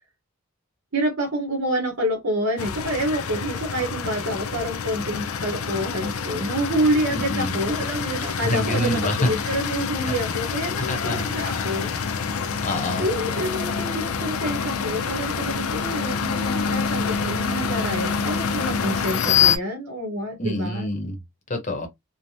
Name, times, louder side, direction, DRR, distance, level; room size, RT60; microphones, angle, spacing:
voice 1, 0.9-11.9 13.0-20.9, right 1 dB, 65° right, 0.9 m, -27 dB
sound 1, 2.6-19.6, left 6 dB, 75° left, 0.4 m, -26 dB
voice 2, 7.1-7.6 8.4-9.3 10.1-10.2 10.9-11.2 12.6-13.1 20.4-21.2 21.5-21.9, left 1 dB, 35° left, 0.8 m, -26 dB
3.2 x 2.1 x 2.7 m
head